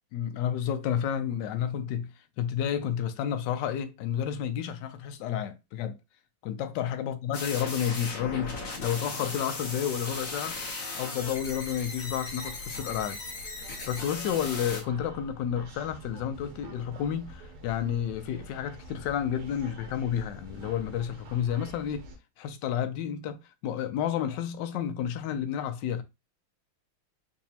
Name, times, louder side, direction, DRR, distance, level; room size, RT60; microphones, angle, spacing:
voice 1, 0.1-2.1 2.4-6.0 6.4-10.5 11.0-13.2 13.6-22.1 22.4-26.0, left 9 dB, 75° left, 1.1 m, -31 dB
sound 1, 7.3-14.8, left 3 dB, 45° left, 0.9 m, -37 dB
sound 2, 11.2-22.2, right 1 dB, 90° right, 1.6 m, -47 dB
4.0 x 2.6 x 2.7 m
omnidirectional pair, 2.2 m